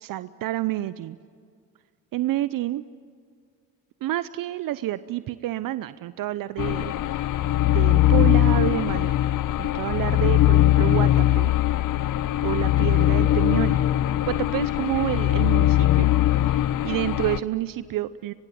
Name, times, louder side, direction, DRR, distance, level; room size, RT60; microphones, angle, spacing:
voice 1, 0.0-1.2 2.1-2.8 4.0-7.2 7.7-9.1 9.6-11.5 12.4-13.8 14.3-18.3, right 14 dB, 65° right, 15 dB, 0.7 m, -29 dB
sound 1, 6.6-17.4, left 14 dB, 55° left, 0.8 m, -21 dB
24.0 x 23.0 x 9.3 m, 2.1 s
supercardioid pair, 60°, 37 cm